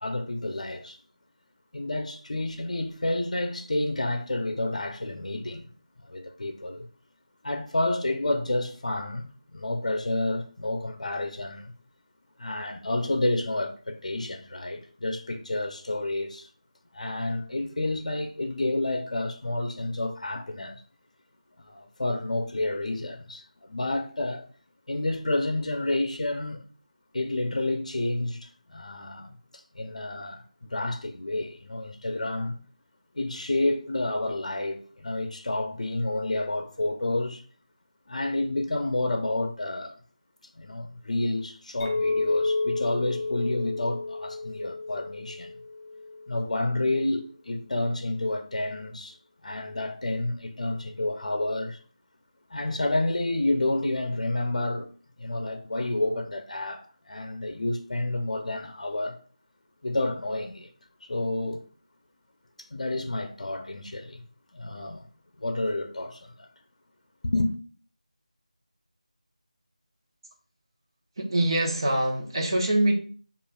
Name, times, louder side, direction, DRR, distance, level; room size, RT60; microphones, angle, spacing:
voice 1, 0.0-1.0 1.7-5.7 6.1-6.9 7.4-11.7 12.4-16.5 16.9-20.8 21.6-24.5 24.9-26.6 27.1-29.3 29.7-32.6 33.1-37.4 38.1-39.9 40.6-45.5 46.3-49.2 49.4-51.8 52.5-54.9 55.2-59.2 59.8-60.7 61.1-61.6 62.7-64.2 64.5-65.0 65.4-66.5 67.2-67.5, left 2 dB, 65° left, 0.6 m, -29 dB
Chink clink, 41.8-46.3, left 3 dB, 20° left, 1.1 m, -30 dB
voice 2, 71.2-72.9, right 1 dB, 35° right, 0.8 m, -24 dB
5.1 x 2.4 x 2.3 m
figure-of-eight pair, 175°, 4 cm